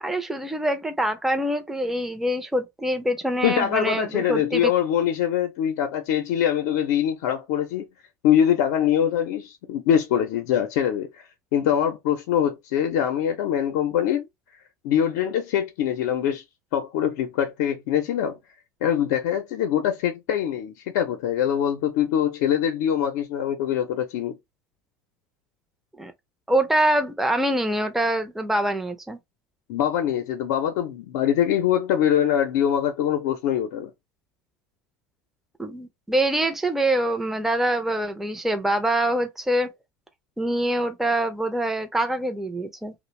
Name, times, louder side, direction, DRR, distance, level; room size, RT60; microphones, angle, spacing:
voice 1, 0.0-4.7 26.0-26.1 26.5-29.2 35.6-39.7 40.4-42.9, right 1 dB, 5° right, 0.5 m, -25 dB
voice 2, 3.4-7.9 8.2-11.2 11.5-14.3 14.8-16.4 16.7-18.4 18.8-24.4 29.7-33.9, left 9 dB, 75° left, 0.5 m, -23 dB
2.5 x 2.0 x 3.0 m
supercardioid pair, 90°, 9 cm